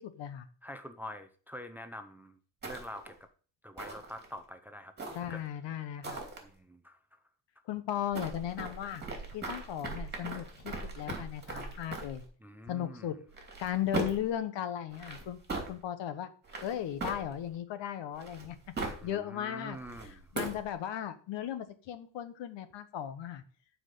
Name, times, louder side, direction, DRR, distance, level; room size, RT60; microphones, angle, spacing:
voice 1, 0.0-0.5 5.1-6.2 7.7-9.0 9.3-12.2 12.7-13.2 13.6-15.4 15.7-16.3 16.6-18.6 19.0-19.8 20.0-23.4, left 10 dB, 70° left, 11 dB, 1.3 m, -36 dB
voice 2, 0.6-2.4 2.6-3.2 3.6-5.4 6.4-7.2 12.4-13.2 19.0-20.3, equal, 5° right, 8 dB, 0.5 m, -46 dB
sound 1, 2.6-3.1 3.8-4.3 5.0-5.5 6.0-6.4 8.1-12.2 13.3-14.3 14.9-15.7 16.4-17.5 18.1-19.1 19.7-20.7, right 3 dB, 20° right, 2.8 m, -39 dB
11.5 x 5.0 x 6.8 m, 0.42 s
cardioid pair, 170°, 45 cm